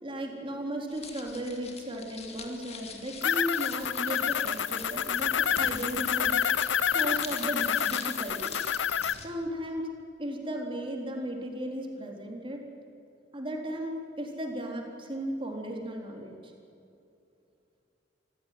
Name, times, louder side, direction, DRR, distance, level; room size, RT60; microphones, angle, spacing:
voice 1, 0.0-6.4 6.8-8.5 9.2-9.9 10.2-12.6 13.3-16.3, right 1 dB, 30° right, 1 dB, 3.9 m, -35 dB
sound 1, 0.9-9.3, left 5 dB, 35° left, 2.5 m, -44 dB
sound 2, 3.2-9.1, left 8 dB, 70° left, 0.7 m, -28 dB
26.0 x 16.0 x 9.5 m, 2.7 s
head